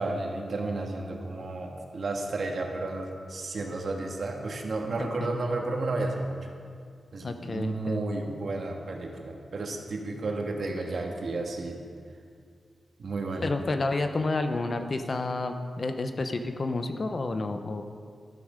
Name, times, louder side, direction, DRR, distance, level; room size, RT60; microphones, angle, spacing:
voice 1, 0.0-6.4 7.1-11.8 13.0-13.5, right 2 dB, 55° right, 2 dB, 1.6 m, -32 dB
voice 2, 5.0-5.3 7.2-8.1 13.4-17.8, left 3 dB, 40° left, 7 dB, 0.7 m, -30 dB
12.5 x 12.0 x 5.1 m, 2.2 s
wide cardioid pair, 150°, 0 cm